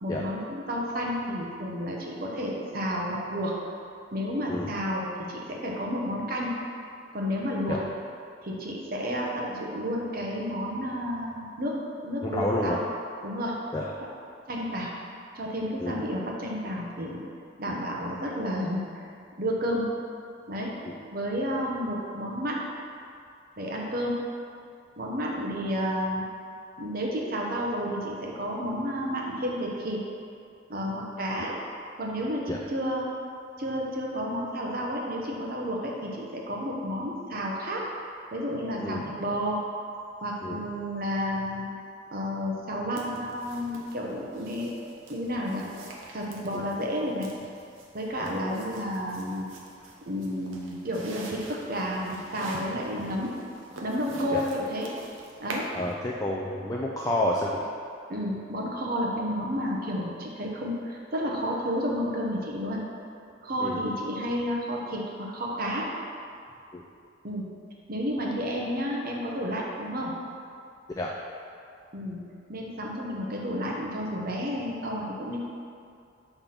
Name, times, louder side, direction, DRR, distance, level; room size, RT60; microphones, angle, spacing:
voice 1, 0.0-3.5 4.1-6.6 7.1-7.8 8.4-11.7 12.0-12.8 13.2-13.6 14.5-14.9 15.3-17.2 17.6-19.1 19.4-19.9 20.5-20.7 21.1-22.6 23.6-24.2 25.0-26.3 26.8-30.0 30.7-31.6 32.0-33.1 33.6-37.8 38.3-39.6 40.2-41.6 42.1-44.7 45.1-45.6 46.1-47.3 47.9-49.5 50.1-53.4 53.8-54.9 55.4-55.7 58.1-62.8 63.4-65.9 67.2-67.4 67.9-70.1 71.9-72.2 72.5-75.4, equal, 45° right, -2 dB, 0.9 m, -31 dB
voice 2, 12.2-12.8 13.7-13.9 15.8-16.0 17.7-17.8 20.8-21.0 32.5-32.6 38.8-39.0 40.4-40.7 46.5-46.7 48.2-48.3 54.3-54.4 55.7-57.6 63.6-63.8 66.7-66.8 71.0-71.1, left 1 dB, 15° left, -3 dB, 0.3 m, -30 dB
sound 1, 43.0-55.9, right 2 dB, 85° right, 0.8 m, -45 dB
5.6 x 3.4 x 5.8 m, 2.4 s
head